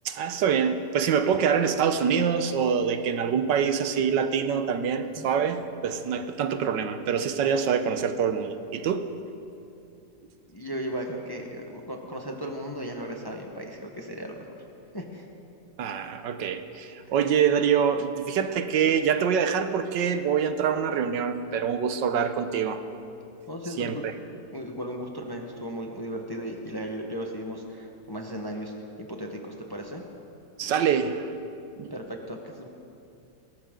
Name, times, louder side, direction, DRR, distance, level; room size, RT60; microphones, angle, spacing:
voice 1, 0.0-9.1 15.8-22.8 23.8-24.1 30.6-31.3 31.8-31.9, right 7 dB, 75° right, 9 dB, 1.4 m, -25 dB
voice 2, 10.5-14.4 14.9-15.3 23.5-24.0 24.5-28.7 29.0-30.0 31.9-32.7, equal, 15° left, 1 dB, 1.0 m, -36 dB
21.0 x 18.0 x 3.8 m, 2.6 s
omnidirectional pair, 1.9 m